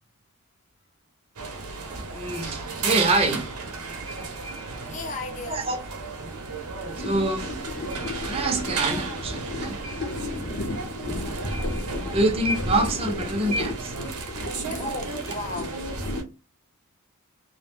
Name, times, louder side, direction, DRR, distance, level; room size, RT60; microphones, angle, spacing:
sound 1, 1.4-16.2, right 3 dB, 80° right, 0.7 m, -34 dB
voice 1, 2.0-3.5 5.5-5.8 6.8-7.5 8.2-9.8 11.8-13.9, right 2 dB, 25° right, 0.5 m, -26 dB
voice 2, 4.9-5.7 10.4-10.8 14.7-15.8, left 2 dB, 35° left, 0.4 m, -36 dB
sound 2, 6.9-16.2, left 2 dB, 55° left, 0.8 m, -34 dB
2.6 x 2.1 x 3.5 m
head